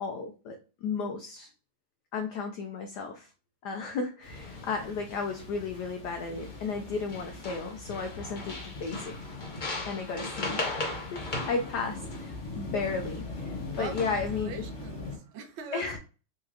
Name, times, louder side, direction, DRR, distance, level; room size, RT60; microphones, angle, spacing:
voice 1, 0.0-1.5 2.1-3.3 3.6-9.2 9.8-10.8 11.1-14.6 15.7-16.0, left 4 dB, 90° left, 5 dB, 0.9 m, -34 dB
sound 1, 4.2-15.2, left 3 dB, 35° left, 1.8 m, -42 dB
sound 2, 4.3-4.7 5.1-5.7 6.3-6.8 7.1-13.2 13.7-14.4, left 2 dB, 55° left, 0.5 m, -38 dB
voice 2, 13.7-16.0, right 4 dB, 75° right, 6 dB, 1.4 m, -41 dB
4.3 x 3.0 x 2.4 m, 0.34 s
omnidirectional pair, 2.4 m